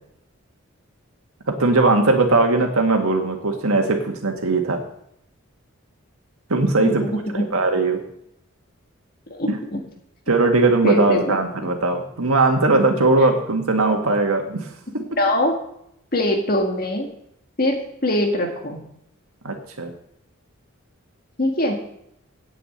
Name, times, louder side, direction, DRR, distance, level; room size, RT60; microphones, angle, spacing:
voice 1, 1.5-4.8 6.5-7.0 7.3-8.0 9.5-9.6 10.3-14.7 19.4-19.9, right 3 dB, 85° right, 4 dB, 1.8 m, -19 dB
voice 2, 6.8-7.4 9.4-9.8 10.8-11.7 13.2-13.3 15.2-15.6 16.1-17.1 17.6-17.8 18.0-18.8 21.4-21.8, left 1 dB, 45° left, 2 dB, 2.1 m, -22 dB
8.4 x 7.2 x 8.7 m, 0.75 s
head